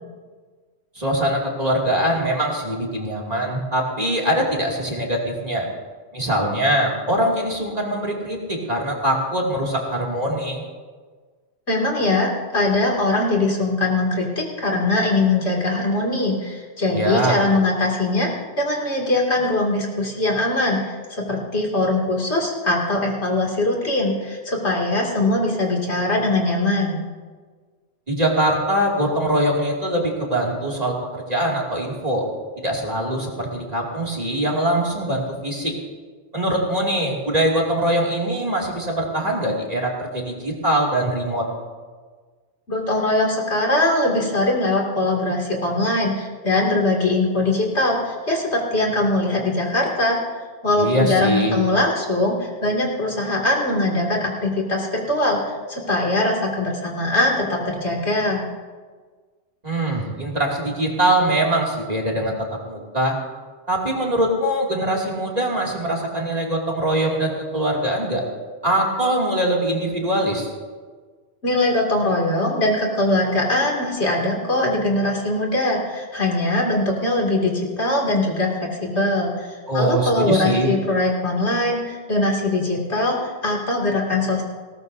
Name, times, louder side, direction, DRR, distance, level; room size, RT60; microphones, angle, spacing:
voice 1, 1.0-5.7 6.1-10.6 16.9-17.4 28.1-32.2 32.6-35.7 36.3-41.5 50.8-51.6 59.6-63.2 63.7-68.2 68.6-70.5 79.7-80.7, right 1 dB, 35° right, -3 dB, 2.7 m, -22 dB
voice 2, 11.7-27.0 42.7-50.2 50.6-58.4 71.4-84.4, left 2 dB, 70° left, -1 dB, 2.9 m, -21 dB
19.5 x 18.0 x 2.7 m, 1.5 s
omnidirectional pair, 1.2 m